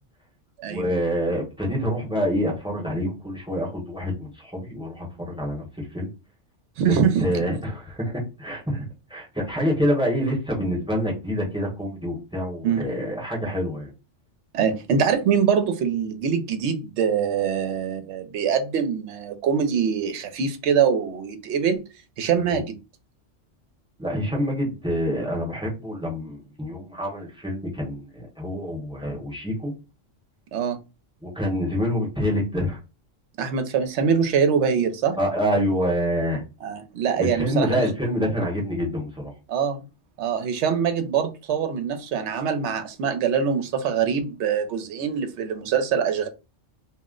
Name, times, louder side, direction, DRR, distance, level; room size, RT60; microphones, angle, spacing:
voice 1, 0.7-6.1 7.2-13.9 22.4-22.6 24.0-29.7 31.2-32.8 35.2-36.4 37.2-39.3, equal, 5° right, 0.8 m, -26 dB
voice 2, 6.8-7.4 12.6-12.8 14.5-21.8 22.2-22.8 30.5-30.8 33.4-35.2 36.6-37.9 39.5-39.9 40.2-46.3, right 7 dB, 70° right, 0.9 m, -24 dB
2.4 x 2.0 x 3.6 m
omnidirectional pair, 1.2 m